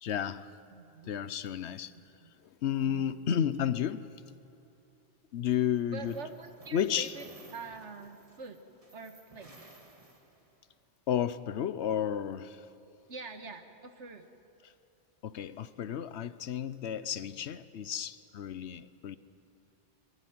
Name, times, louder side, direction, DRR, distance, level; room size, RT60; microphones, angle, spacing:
voice 1, 0.0-0.5 1.1-1.9 2.4-4.1 5.3-6.1 6.7-7.1 11.1-12.7 15.2-19.2, left 9 dB, 75° left, 1.0 m, -32 dB
voice 2, 0.7-1.1 1.6-2.3 2.8-3.1 5.9-8.6 8.9-9.5 13.1-14.3, right 4 dB, 90° right, 1.8 m, -45 dB
sound 1, 5.5-10.7, right 2 dB, 30° right, 2.0 m, -56 dB
24.0 x 16.5 x 9.5 m
omnidirectional pair, 1.2 m